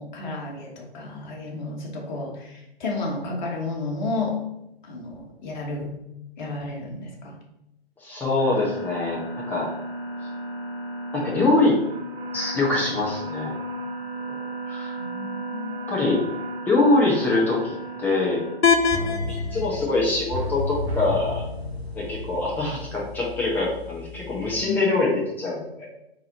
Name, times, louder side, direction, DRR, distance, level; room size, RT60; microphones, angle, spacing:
voice 1, 0.0-4.5 4.8-6.0 6.4-7.4 14.7-15.8 24.5-24.8, left 3 dB, 50° left, -1 dB, 1.2 m, -32 dB
voice 2, 8.0-9.2 9.5-9.7 11.1-11.8 12.3-13.5 14.3-14.4 14.7-14.9 15.9-16.2 16.6-18.4 19.5-21.4 21.9-25.9, left 2 dB, 5° left, -5 dB, 0.4 m, -23 dB
sound 1, 8.4-18.5, right 1 dB, 10° right, 1.6 m, -34 dB
sound 2, 18.6-24.6, left 5 dB, 90° left, 0.5 m, -29 dB
sound 3, 18.9-23.6 23.9-24.0, left 2 dB, 25° right, 0.9 m, -32 dB
3.9 x 2.8 x 4.0 m, 0.85 s
figure-of-eight pair, 115°, 30 cm